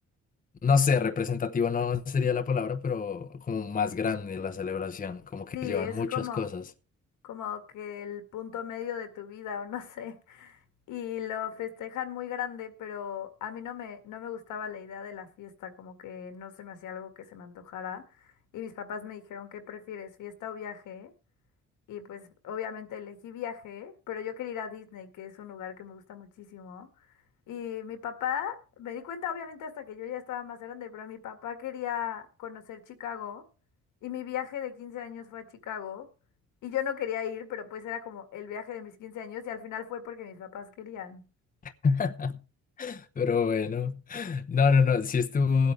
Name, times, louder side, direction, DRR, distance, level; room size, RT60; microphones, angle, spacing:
voice 1, 0.6-6.6 41.8-42.4 42.8-45.7, left 5 dB, 30° left, 0.8 m, -27 dB
voice 2, 5.5-6.5 7.2-10.6 10.9-21.1 21.9-26.9 27.5-33.4 34.0-36.1 36.6-41.2, left 9 dB, 85° left, 2.0 m, -37 dB
20.0 x 8.3 x 3.3 m
cardioid pair, 90°, 30 cm